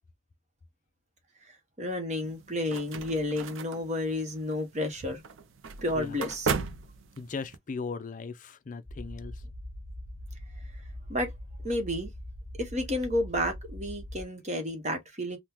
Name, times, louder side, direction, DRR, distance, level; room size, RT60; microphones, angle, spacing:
voice 1, 1.8-5.2 5.8-6.5 11.1-11.3 11.6-12.1 12.6-15.4, left 1 dB, 35° right, 1.0 m, -31 dB
sound 1, 2.2-7.6, right 5 dB, 70° right, 0.4 m, -37 dB
voice 2, 7.2-9.4, left 4 dB, 40° left, 0.4 m, -38 dB
sound 2, 8.9-14.2, left 1 dB, 5° left, 1.5 m, -42 dB
3.6 x 2.1 x 2.9 m
head